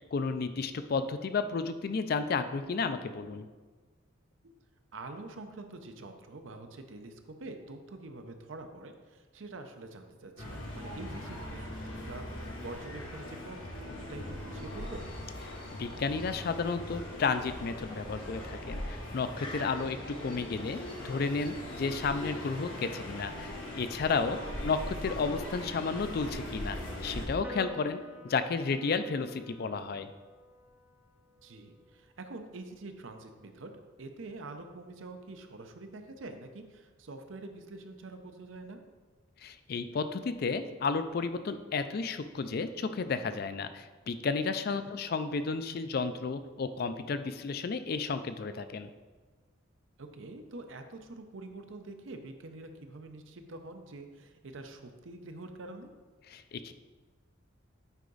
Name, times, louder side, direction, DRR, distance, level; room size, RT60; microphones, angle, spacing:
voice 1, 0.1-3.5 15.7-24.4 24.6-30.1 39.4-48.9 56.3-56.7, left 4 dB, 50° left, 10 dB, 0.4 m, -32 dB
voice 2, 4.9-15.1 24.6-24.8 31.4-33.7 34.0-38.8 44.8-45.0 50.0-55.9, right 2 dB, 80° right, 6 dB, 0.7 m, -46 dB
sound 1, 10.4-27.3, left 1 dB, 85° left, 1.6 m, -40 dB
sound 2, 14.5-24.9, left 2 dB, 25° left, 0.8 m, -53 dB
Piano, 27.4-34.1, equal, 10° right, 0.7 m, -52 dB
8.1 x 4.7 x 3.9 m, 1.4 s
head